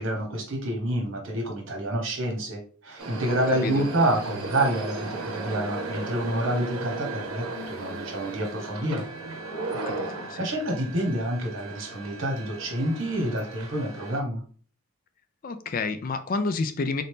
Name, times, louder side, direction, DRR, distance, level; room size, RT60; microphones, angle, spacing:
voice 1, 0.0-9.0 10.4-14.4, right 1 dB, 65° right, 1 dB, 1.2 m, -28 dB
sound 1, 3.0-14.2, right 2 dB, 90° right, 0.7 m, -36 dB
voice 2, 3.3-3.9 9.7-10.5 15.4-17.0, left 3 dB, 40° left, 9 dB, 0.3 m, -30 dB
3.9 x 2.7 x 3.4 m, 0.42 s
head